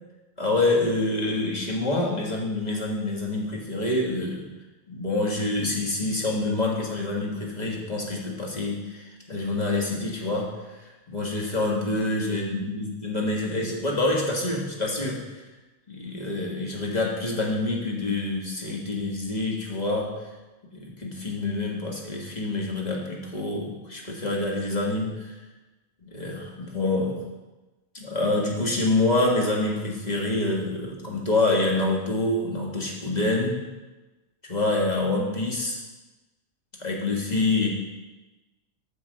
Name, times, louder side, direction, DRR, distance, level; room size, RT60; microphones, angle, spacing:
voice 1, 0.4-4.5 4.9-10.5 10.8-15.2 15.9-20.1 20.7-25.3 26.0-27.2 27.9-33.6 34.5-35.8 36.8-37.7, left 2 dB, 30° left, -2 dB, 1.7 m, -26 dB
8.1 x 6.4 x 5.2 m, 1.2 s
omnidirectional pair, 1.4 m